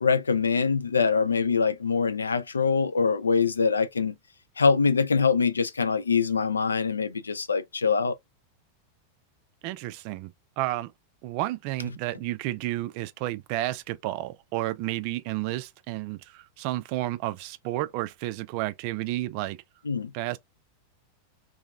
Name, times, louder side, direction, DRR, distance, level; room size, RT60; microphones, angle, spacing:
voice 1, 0.0-4.1 4.6-8.2 19.9-20.1, left 5 dB, 75° left, 0.3 m, -24 dB
voice 2, 9.6-10.9 11.2-19.6 20.1-20.4, right 16 dB, 45° right, 0.3 m, -31 dB
2.7 x 2.3 x 2.2 m
figure-of-eight pair, 90°, 0 cm